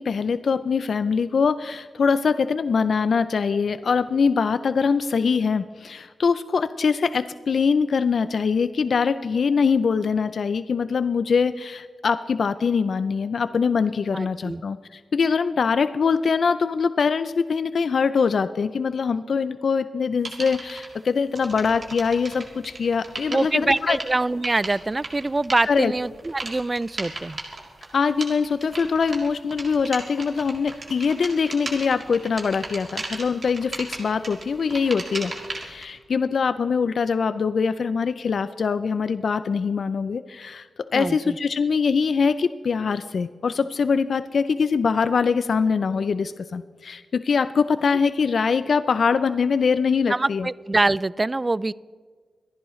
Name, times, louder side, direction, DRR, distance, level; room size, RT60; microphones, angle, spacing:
voice 1, 0.0-24.0 25.7-25.9 27.9-40.7 40.9-50.5, left 5 dB, 65° left, 13 dB, 0.4 m, -23 dB
voice 2, 14.1-14.6 23.3-27.4 40.9-41.4 50.1-51.7, right 2 dB, 30° right, 21 dB, 0.3 m, -24 dB
sound 1, 20.2-20.9 21.3-35.8, right 2 dB, 50° right, 3.0 m, -36 dB
24.5 x 11.0 x 3.1 m, 1.5 s
cardioid pair, 50°, 0 cm